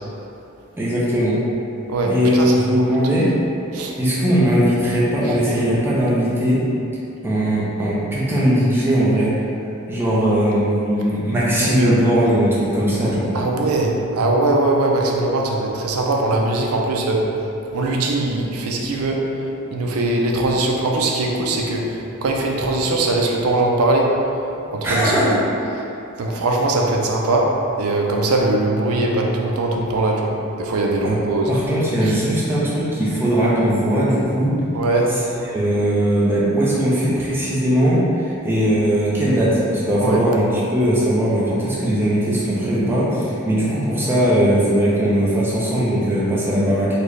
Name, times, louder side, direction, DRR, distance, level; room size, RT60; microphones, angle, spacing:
voice 1, 0.8-1.4 2.0-3.3 4.0-6.6 7.2-9.3 9.9-13.3 24.8-25.4 31.0-31.1 31.5-34.5 35.1-46.9, equal, 10° right, -8 dB, 0.6 m, -19 dB
voice 2, 1.9-2.8 3.7-3.9 11.6-12.0 13.3-17.3 17.7-19.3 19.7-21.9 22.2-24.1 24.6-25.1 26.2-27.5 27.8-30.3 30.6-31.5 34.7-35.1 40.0-40.2, right 2 dB, 80° right, 0 dB, 0.5 m, -20 dB
3.9 x 2.2 x 3.2 m, 2.8 s
head